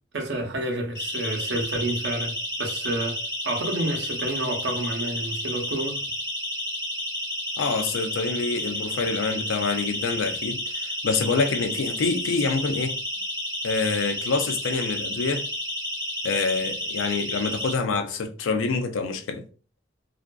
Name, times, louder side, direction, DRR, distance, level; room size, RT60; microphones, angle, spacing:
voice 1, 0.1-6.1, right 1 dB, 60° right, 0.6 m, -29 dB
Siren, 0.9-17.7, left 1 dB, 15° left, 1.2 m, -31 dB
voice 2, 7.6-13.0 13.6-15.5 16.2-19.4, left 4 dB, 75° left, 0.4 m, -26 dB
2.4 x 2.4 x 2.2 m
head